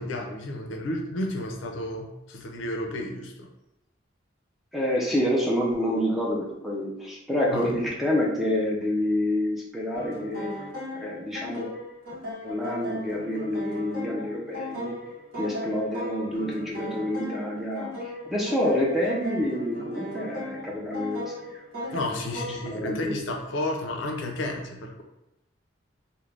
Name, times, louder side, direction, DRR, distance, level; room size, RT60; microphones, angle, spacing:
voice 1, 0.0-3.5 7.5-7.8 21.9-25.0, left 1 dB, 70° left, 2 dB, 0.5 m, -32 dB
voice 2, 4.7-10.5 10.9-11.7 12.4-14.9 15.3-21.9 22.3-22.4 22.7-23.2, left 1 dB, ahead, -4 dB, 0.4 m, -28 dB
sound 1, 9.9-22.7, left 1 dB, 50° right, 1.0 m, -37 dB
2.4 x 2.1 x 3.2 m, 0.91 s
head